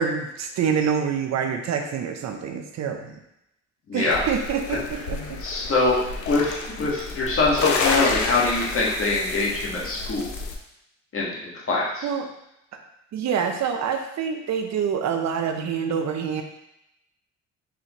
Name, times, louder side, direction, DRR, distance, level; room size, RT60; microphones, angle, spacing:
voice 1, 0.0-3.2 3.9-5.4 12.0-12.3 12.7-12.8 13.1-16.4, right 7 dB, 65° right, 5 dB, 0.6 m, -26 dB
voice 2, 3.9-4.2 5.4-6.0 6.3-10.3 11.1-12.1, left 3 dB, 45° left, -4 dB, 1.5 m, -24 dB
sound 1, 4.1-10.6, left 4 dB, 80° left, 0.7 m, -29 dB
4.9 x 3.5 x 2.9 m, 0.83 s
cardioid pair, 90°, 30 cm